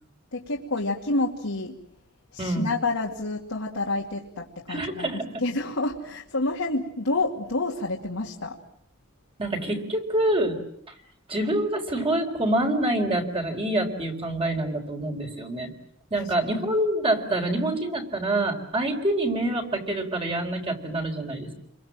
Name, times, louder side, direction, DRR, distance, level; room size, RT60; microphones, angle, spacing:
voice 1, 0.3-1.8 2.3-5.1 5.4-8.6 16.2-16.3, left 2 dB, 80° left, -1 dB, 2.4 m, -28 dB
voice 2, 2.4-2.7 4.7-5.3 9.4-10.6 11.3-15.7 16.1-21.5, right 1 dB, 25° right, 4 dB, 4.1 m, -26 dB
29.0 x 23.0 x 7.6 m, 0.72 s
head